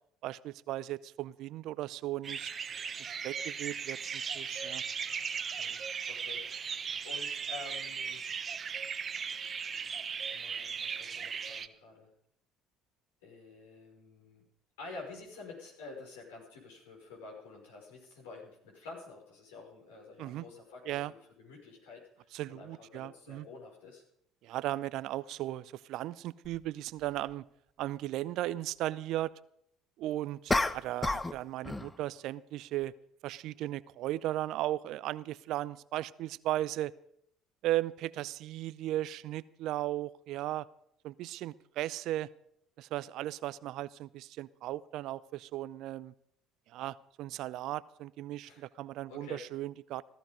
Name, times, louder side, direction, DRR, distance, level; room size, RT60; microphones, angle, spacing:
voice 1, 0.2-2.5 3.0-4.8 20.2-20.4 20.9-21.1 22.3-23.5 24.4-27.4 27.8-29.3 30.0-32.9 33.2-36.9 37.6-40.7 41.0-42.3 42.8-46.1 46.7-50.0, right 14 dB, 60° right, 19 dB, 0.5 m, -36 dB
sound 1, 2.2-11.7, right 6 dB, 40° right, 1.0 m, -37 dB
voice 2, 5.6-8.2 10.3-12.1 13.2-14.4 14.8-22.0 22.5-24.0 48.5-48.6 49.1-49.4, left 3 dB, 75° left, -1 dB, 5.5 m, -49 dB
sound 2, 26.4-26.6 30.5-31.4 31.6-32.0, left 2 dB, 15° left, 0.9 m, -30 dB
15.5 x 14.0 x 5.2 m, 0.71 s
hypercardioid pair, 60°, 0 cm